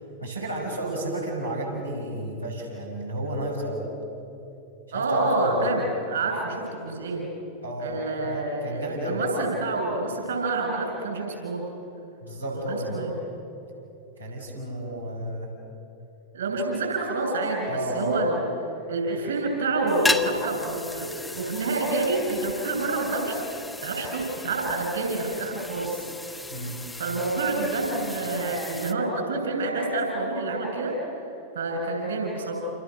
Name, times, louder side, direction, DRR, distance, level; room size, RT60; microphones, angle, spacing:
voice 1, 0.2-3.9 4.9-5.7 7.6-9.2 12.2-13.0 14.2-15.6 17.7-18.3 26.5-26.9, right 1 dB, 90° right, -6 dB, 6.4 m, -32 dB
voice 2, 4.9-7.3 7.8-11.6 12.5-13.1 16.3-18.5 18.9-26.4 27.0-30.9 31.6-32.5, right 2 dB, 65° right, 1 dB, 7.1 m, -28 dB
sound 1, 19.9-28.9, left 2 dB, 10° left, 1.2 m, -35 dB
29.0 x 29.0 x 6.5 m, 2.9 s
figure-of-eight pair, 90°, 0 cm